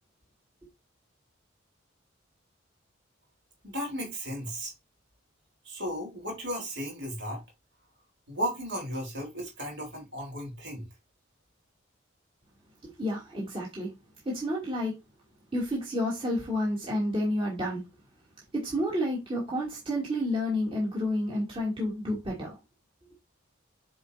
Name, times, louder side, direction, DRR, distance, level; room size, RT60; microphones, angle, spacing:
voice 1, 3.6-4.7 5.6-7.4 8.3-10.9, equal, 60° right, 4.0 m, -35 dB
voice 2, 12.8-13.9 14.2-14.9 15.5-17.8 18.5-22.6 23.1-23.2, left 1 dB, 25° right, 2.8 m, -30 dB
10.0 x 4.7 x 2.8 m
head